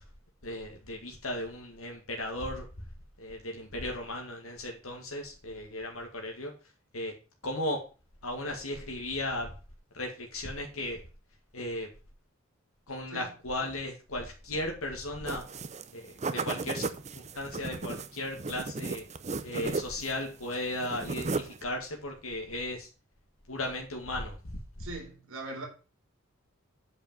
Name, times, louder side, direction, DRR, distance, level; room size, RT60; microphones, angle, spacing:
voice 1, 0.4-2.7 3.2-6.5 6.9-7.1 7.4-7.8 8.2-9.5 9.9-11.0 11.5-11.9 12.9-15.5 15.9-16.9 17.1-19.0 19.4-22.9 23.5-24.9, left 1 dB, 80° left, 1.9 m, -36 dB
sound 1, 15.3-15.9 16.2-20.2 20.5-21.6, right 3 dB, 35° right, 0.7 m, -35 dB
voice 2, 24.8-25.7, right 2 dB, 75° right, 3.7 m, -40 dB
8.7 x 5.2 x 7.2 m
head